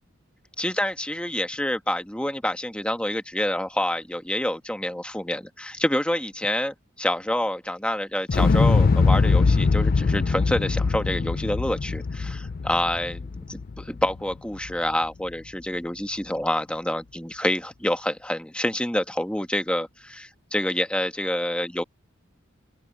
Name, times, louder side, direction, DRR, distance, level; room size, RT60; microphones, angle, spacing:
voice 1, 0.6-21.8, left 1 dB, 5° left, 1.3 m, -27 dB
Explosion, 8.3-14.3 14.6-14.7, left 4 dB, 45° left, 0.4 m, -22 dB
open air
head